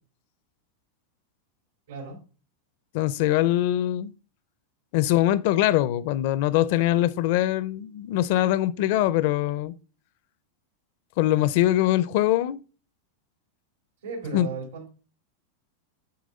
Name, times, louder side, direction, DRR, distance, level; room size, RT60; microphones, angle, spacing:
voice 1, 2.9-4.1 4.9-9.7 11.2-12.6 14.3-14.5, left 14 dB, 55° left, 0.5 m, -23 dB
voice 2, 14.0-14.9, right 4 dB, 85° right, 3.1 m, -35 dB
8.5 x 3.7 x 5.3 m
supercardioid pair, 150°, 0 cm